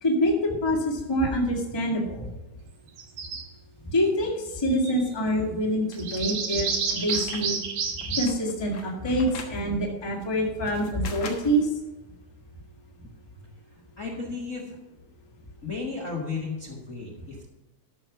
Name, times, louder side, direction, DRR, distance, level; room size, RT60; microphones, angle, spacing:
voice 1, 0.0-2.3 3.8-7.6 8.1-11.7, equal, 10° left, -1 dB, 1.6 m, -26 dB
sound 1, 3.0-3.4 4.5-5.0 5.9-8.3, right 5 dB, 75° right, 2.9 m, -30 dB
sound 2, 5.9-7.5 7.8-9.6 10.2-11.7, left 5 dB, 50° left, 1.7 m, -42 dB
voice 2, 13.4-14.8 15.6-17.5, left 4 dB, 35° left, -2 dB, 1.6 m, -35 dB
13.0 x 6.5 x 5.8 m, 1.0 s
omnidirectional pair, 3.5 m